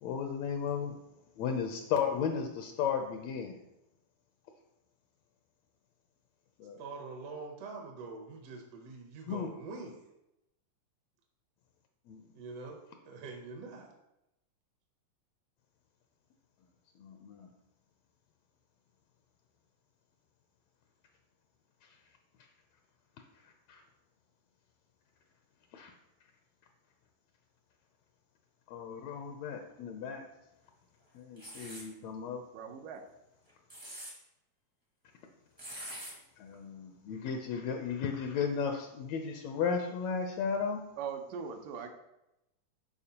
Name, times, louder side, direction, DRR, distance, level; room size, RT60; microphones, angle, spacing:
voice 1, 0.0-1.0 1.4-3.6 6.6-6.8 9.3-9.5 12.1-12.2 17.0-17.5 23.7-23.8 25.7-25.9 28.7-30.2 31.1-32.4 36.4-40.8, left 6 dB, 80° left, 4 dB, 1.5 m, -34 dB
voice 2, 6.8-10.0 12.3-13.9, right 4 dB, 70° right, 1 dB, 1.6 m, -44 dB
sound 1, 31.4-31.9 33.5-34.1 35.6-36.1, equal, 25° right, 0.4 m, -44 dB
voice 3, 32.5-33.0 41.0-41.9, right 6 dB, 85° right, 5 dB, 2.4 m, -40 dB
12.0 x 4.2 x 2.9 m, 0.89 s
omnidirectional pair, 3.7 m